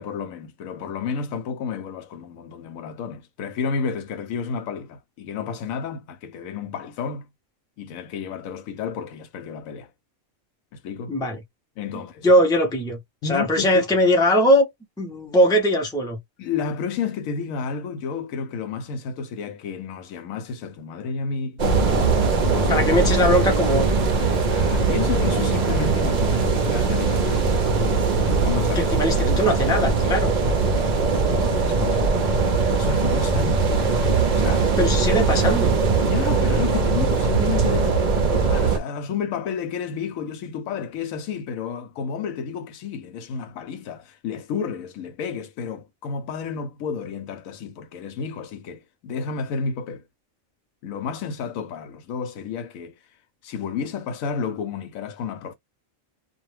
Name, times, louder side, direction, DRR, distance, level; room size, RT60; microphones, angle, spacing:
voice 1, 0.0-7.3 7.8-9.9 10.7-11.2 11.8-12.3 13.2-13.8 16.4-22.9 24.5-28.9 30.7-31.0 31.6-32.2 32.7-33.7 34.3-34.7 36.1-50.0 50.8-52.9 53.4-55.5, left 6 dB, 85° left, 1.0 m, -31 dB
voice 2, 12.2-14.7 15.0-16.2 22.7-23.9 28.8-30.3 34.8-35.8, equal, 5° left, 0.4 m, -20 dB
sound 1, 21.6-38.8, right 4 dB, 50° right, 0.5 m, -21 dB
2.4 x 2.1 x 3.1 m
omnidirectional pair, 1.4 m